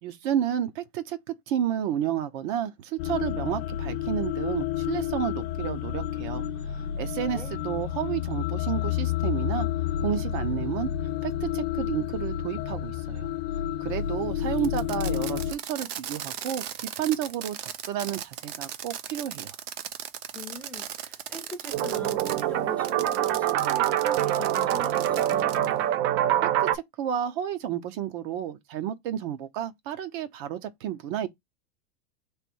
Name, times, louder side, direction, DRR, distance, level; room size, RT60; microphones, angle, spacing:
voice 1, 0.0-6.4 7.0-9.7 10.0-10.9 11.2-13.3 13.8-19.5 26.4-31.3, right 10 dB, 55° right, 0.9 m, -31 dB
sound 1, 3.0-15.5, left 11 dB, 75° left, 0.7 m, -30 dB
Fireworks, 14.6-22.4 22.8-25.7, right 10 dB, 90° right, 0.7 m, -38 dB
voice 2, 20.3-25.6, left 1 dB, 5° left, 0.6 m, -41 dB
sound 2, 21.7-26.8, right 12 dB, 40° right, 0.4 m, -25 dB
3.3 x 3.1 x 4.5 m
supercardioid pair, 145°, 30 cm